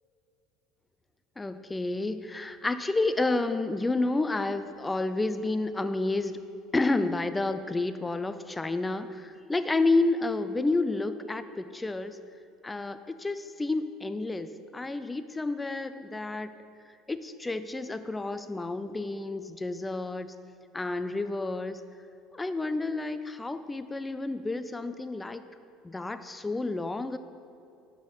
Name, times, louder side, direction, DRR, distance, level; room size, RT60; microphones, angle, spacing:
voice 1, 1.4-6.4 6.7-12.2 12.6-16.5 17.1-20.3 20.7-21.8 22.3-25.4 25.8-27.2, left 2 dB, 15° left, 11 dB, 0.3 m, -30 dB
5.5 x 5.1 x 5.5 m, 2.6 s
supercardioid pair, 110°, 0 cm